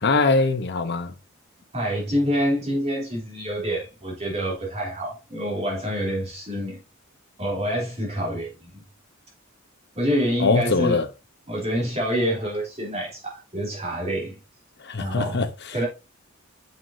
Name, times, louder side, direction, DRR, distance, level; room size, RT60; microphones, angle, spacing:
voice 1, 0.0-1.2 10.4-11.1 14.8-15.7, left 3 dB, 55° left, 0.9 m, -22 dB
voice 2, 1.7-6.8 7.4-8.8 9.9-11.0 11.5-14.4 15.0-15.5 15.7-15.9, equal, 30° right, 3.2 m, -27 dB
7.4 x 5.8 x 2.7 m
head